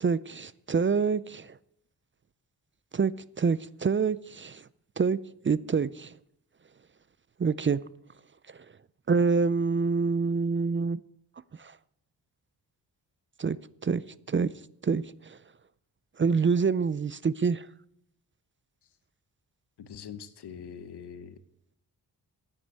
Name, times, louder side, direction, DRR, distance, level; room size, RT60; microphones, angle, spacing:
voice 1, 0.0-1.6 2.9-4.6 5.0-5.2 5.4-6.1 7.4-7.8 9.1-11.0 11.6-11.8 13.4-13.6 13.8-14.0 14.3-14.5 14.8-15.4 16.2-17.7, right 5 dB, 30° right, 19 dB, 0.4 m, -26 dB
voice 2, 19.8-21.4, left 7 dB, 80° left, 13 dB, 1.1 m, -43 dB
9.7 x 9.7 x 8.2 m, 0.78 s
cardioid pair, 80°, 39 cm